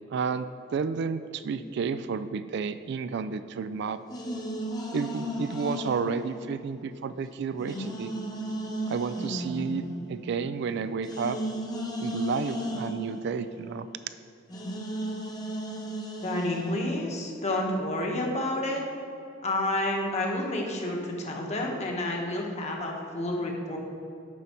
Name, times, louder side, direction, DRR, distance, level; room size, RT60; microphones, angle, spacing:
voice 1, 0.1-0.5 0.7-4.0 4.9-8.1 8.9-9.8 10.1-11.4 12.0-13.9, right 5 dB, 60° right, 12 dB, 0.3 m, -31 dB
sound 1, 4.1-7.1 7.6-14.2 14.5-17.2, equal, 20° left, 0.8 m, -35 dB
voice 2, 16.2-18.8 19.4-23.8, left 1 dB, 35° left, 0 dB, 1.2 m, -30 dB
9.2 x 5.6 x 4.4 m, 2.5 s
head